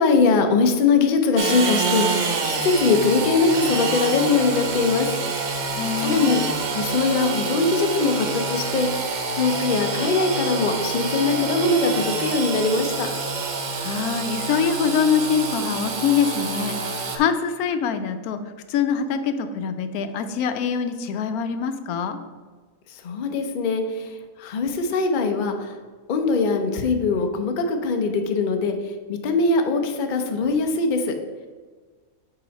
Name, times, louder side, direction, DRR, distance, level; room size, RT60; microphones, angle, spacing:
voice 1, 0.0-5.1 6.0-6.4 6.7-13.1 22.9-25.7 26.1-28.7 29.1-31.1, left 4 dB, 50° left, 5 dB, 0.6 m, -22 dB
Engine / Sawing, 1.4-17.2, right 4 dB, 50° right, 0.5 m, -27 dB
voice 2, 5.8-6.4 13.8-18.4 18.7-22.2, left 7 dB, 85° left, 9 dB, 1.1 m, -24 dB
7.6 x 3.0 x 5.1 m, 1.4 s
omnidirectional pair, 1.5 m